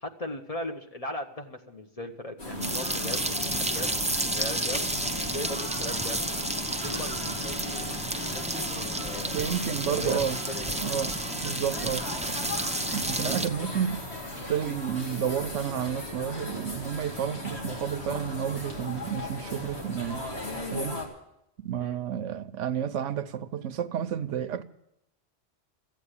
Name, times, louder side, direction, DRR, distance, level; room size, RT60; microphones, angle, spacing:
voice 1, 0.0-3.9 4.3-4.8 5.3-6.2 6.8-10.2 10.5-10.7 11.8-11.9 13.2-13.5 21.8-22.0, left 1 dB, 30° left, 1.2 m, -38 dB
sound 1, 2.4-21.1, left 1 dB, 60° left, 2.7 m, -37 dB
sound 2, 2.6-13.5, right 1 dB, 10° right, 0.5 m, -31 dB
voice 2, 9.3-10.4 10.8-11.1 11.4-12.0 12.9-14.0 14.5-20.2 20.7-21.0 21.6-24.6, right 9 dB, 80° right, 1.1 m, -31 dB
14.5 x 8.5 x 9.9 m
omnidirectional pair, 1.2 m